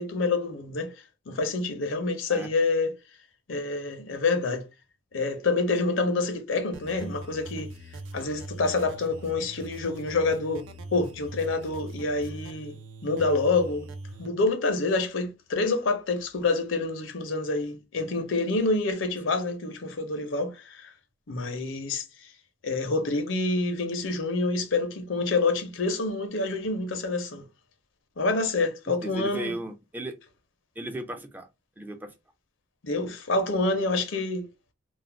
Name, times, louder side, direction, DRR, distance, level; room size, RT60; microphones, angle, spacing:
voice 1, 0.0-3.0 3.5-4.7 5.1-7.7 8.1-10.7 10.9-12.8 13.0-13.9 14.2-20.9 21.3-22.0 22.6-27.4 28.2-29.6 32.8-34.4, left 3 dB, 85° left, 0.6 m, -27 dB
sound 1, 6.7-14.3, right 2 dB, 80° right, 0.4 m, -42 dB
voice 2, 29.0-30.2 30.8-31.5 31.8-32.1, right 1 dB, 10° right, 0.3 m, -35 dB
2.4 x 2.1 x 3.2 m
head